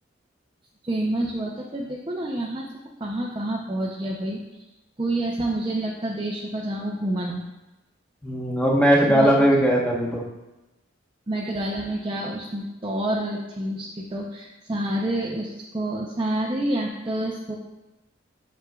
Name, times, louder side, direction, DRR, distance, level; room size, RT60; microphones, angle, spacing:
voice 1, 0.8-2.7 3.0-4.4 5.0-7.4 9.1-9.3 11.3-17.5, right 1 dB, 25° right, -3 dB, 0.6 m, -28 dB
voice 2, 8.2-10.2, equal, 5° left, -3 dB, 1.1 m, -19 dB
8.0 x 6.2 x 2.3 m, 1.0 s
head